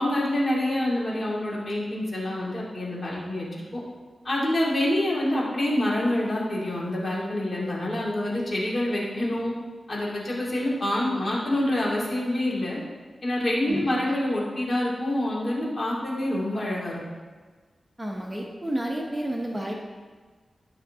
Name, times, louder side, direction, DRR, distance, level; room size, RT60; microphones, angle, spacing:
voice 1, 0.0-3.5 3.7-3.8 4.2-9.5 9.9-12.8 13.2-17.0, left 1 dB, 45° left, -5 dB, 2.6 m, -26 dB
voice 2, 13.7-14.0 18.0-19.7, right 1 dB, 15° right, 0 dB, 1.1 m, -30 dB
13.0 x 6.1 x 3.7 m, 1.4 s
wide cardioid pair, 85°, 0 cm